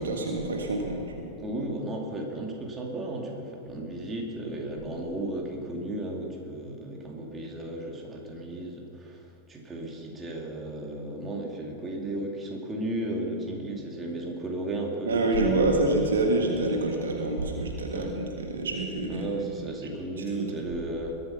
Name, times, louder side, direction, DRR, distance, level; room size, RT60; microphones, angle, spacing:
voice 1, 0.0-1.3 15.0-19.7 20.6-20.7, right 2 dB, 65° right, 2 dB, 1.6 m, -27 dB
voice 2, 1.4-15.8 17.9-18.2 19.1-21.2, right 1 dB, 20° right, 0 dB, 2.4 m, -34 dB
21.5 x 8.5 x 5.8 m, 2.6 s
figure-of-eight pair, 90°, 0 cm